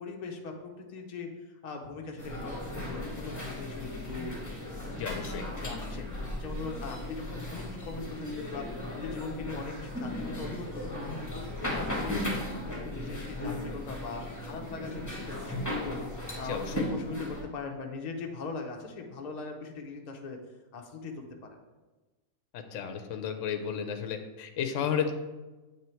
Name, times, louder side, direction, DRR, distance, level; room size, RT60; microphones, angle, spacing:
voice 1, 0.0-4.4 5.6-12.2 12.7-20.4 20.7-21.6, left 4 dB, 40° left, 2 dB, 0.7 m, -40 dB
sound 1, 2.2-17.4, left 1 dB, 15° left, 1.3 m, -36 dB
voice 2, 5.0-5.4 16.4-16.8 22.5-25.1, left 7 dB, 65° left, 6 dB, 0.9 m, -33 dB
8.2 x 3.4 x 4.4 m, 1.2 s
omnidirectional pair, 1.5 m